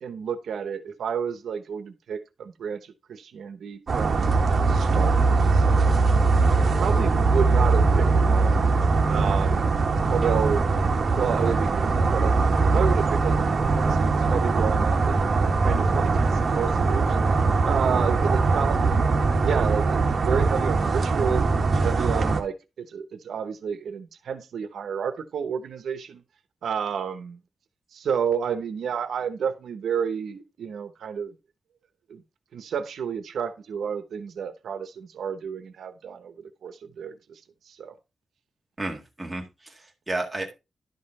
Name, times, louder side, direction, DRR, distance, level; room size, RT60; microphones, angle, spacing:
voice 1, 0.0-4.3 4.6-5.9 6.5-8.6 9.1-9.8 10.1-10.7 11.2-12.3 12.6-15.2 15.6-17.2 17.6-19.1 19.4-21.4 21.8-26.2 26.6-27.4 27.9-31.3 32.1-32.2 32.5-37.4 37.7-38.0, right 7 dB, 85° right, 0.9 m, -30 dB
sound 1, 3.9-22.4, right 3 dB, 45° right, 1.5 m, -21 dB
voice 2, 38.8-40.5, right 2 dB, 10° right, 1.8 m, -32 dB
11.5 x 5.5 x 4.2 m
wide cardioid pair, 165°, 0 cm